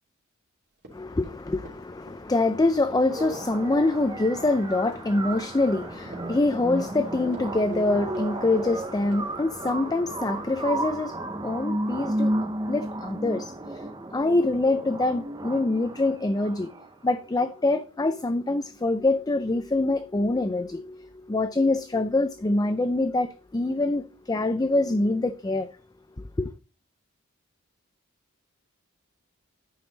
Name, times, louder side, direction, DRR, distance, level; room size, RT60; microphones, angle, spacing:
Run, 0.8-7.9 8.1-8.8 9.1-9.3 9.7-9.8, right 1 dB, 55° right, 3.1 m, -47 dB
voice 1, 0.9-16.7 17.0-25.7 26.2-26.5, left 2 dB, 20° left, 0.4 m, -25 dB
sound 1, 3.1-17.1, right 1 dB, 20° right, 0.7 m, -33 dB
9.5 x 5.5 x 4.0 m
head